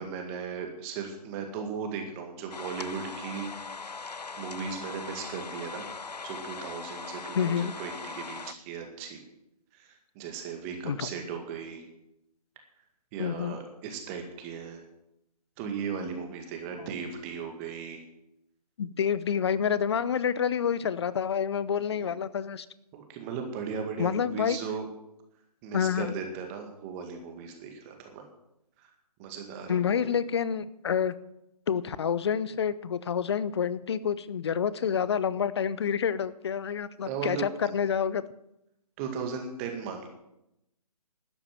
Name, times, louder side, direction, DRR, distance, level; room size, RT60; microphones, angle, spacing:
voice 1, 0.0-3.5 3.9-5.9 6.2-9.2 9.7-11.8 13.1-14.8 15.6-18.0 21.8-22.1 22.9-24.9 25.6-28.3 28.8-28.9 29.2-30.1 37.0-37.5 39.0-40.1, right 6 dB, 20° right, 4 dB, 2.0 m, -37 dB
sound 1, 2.5-8.5, left 4 dB, 85° left, 0.8 m, -40 dB
voice 2, 7.3-7.7 10.8-11.1 13.2-13.6 18.8-22.7 24.0-24.6 25.7-26.1 29.7-31.1 31.7-38.2, left 7 dB, 40° left, 17 dB, 0.7 m, -28 dB
12.5 x 9.8 x 7.5 m, 0.84 s
figure-of-eight pair, 140°, 20 cm